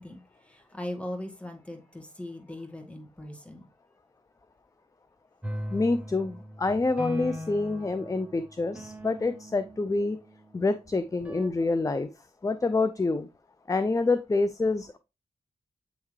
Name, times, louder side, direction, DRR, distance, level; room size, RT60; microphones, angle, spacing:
voice 1, 0.0-3.7, left 1 dB, 10° left, 1.9 m, -39 dB
sound 1, 5.4-10.5 11.2-11.5, left 1 dB, 10° right, 1.0 m, -40 dB
voice 2, 5.7-10.2 10.5-12.1 12.4-13.3 13.7-15.0, left 3 dB, 25° left, 0.5 m, -27 dB
8.3 x 3.6 x 3.2 m
cardioid pair, 50°, 13 cm